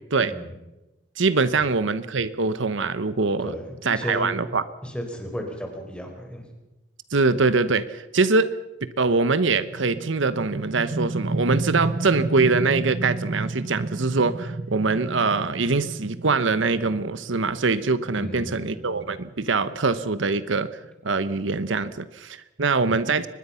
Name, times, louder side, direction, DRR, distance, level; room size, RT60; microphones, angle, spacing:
voice 1, 1.2-3.5 3.8-4.6 7.1-8.5 8.8-20.7 21.0-23.3, right 3 dB, 75° right, 14 dB, 1.0 m, -23 dB
voice 2, 3.4-4.3 4.8-6.5 18.2-18.6, equal, 5° left, 3 dB, 4.4 m, -34 dB
sound 1, 9.5-20.9, right 2 dB, 40° right, 0.7 m, -32 dB
24.5 x 20.5 x 5.7 m, 1.0 s
head